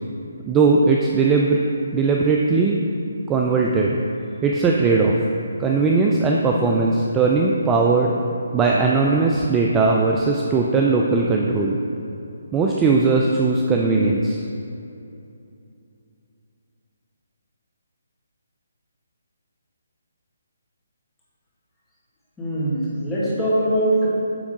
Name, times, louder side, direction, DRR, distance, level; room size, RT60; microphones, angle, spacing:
voice 1, 0.5-1.6 1.9-2.8 3.3-4.0 4.4-5.1 5.6-8.1 8.5-11.8 12.5-14.4, right 4 dB, 15° right, -1 dB, 0.4 m, -19 dB
voice 2, 22.4-24.1, right 1 dB, 10° left, -9 dB, 1.8 m, -22 dB
9.8 x 3.5 x 5.0 m, 2.7 s
figure-of-eight pair, 150°, 0 cm